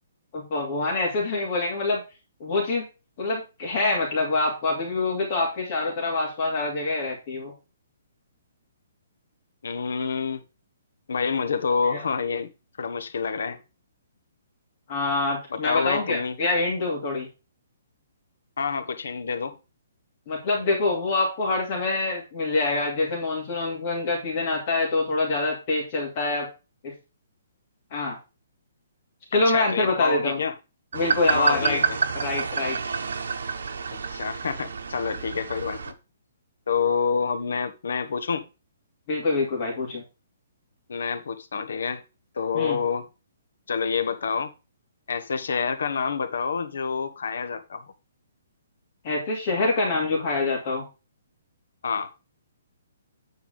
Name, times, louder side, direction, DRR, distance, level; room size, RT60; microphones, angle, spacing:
voice 1, 0.3-2.0 2.4-2.8 3.2-7.5 11.9-12.0 14.9-17.3 20.3-26.5 26.8-26.9 27.9-28.2 29.3-30.4 30.9-31.8 32.1-32.8 39.1-40.0 42.5-42.8 49.0-50.8, left 2 dB, 30° left, 2.7 m, -25 dB
voice 2, 9.6-10.4 11.1-12.5 12.8-13.6 15.5-16.4 18.6-19.6 29.5-30.5 31.3-31.8 34.1-35.9 36.7-38.4 40.9-42.0 42.3-43.1 43.7-44.5 45.1-47.8 51.8-52.1, left 5 dB, 70° left, 1.4 m, -27 dB
sound 1, 30.9-35.9, right 5 dB, 75° right, 1.4 m, -29 dB
9.4 x 4.6 x 5.2 m
hypercardioid pair, 175°, 0 cm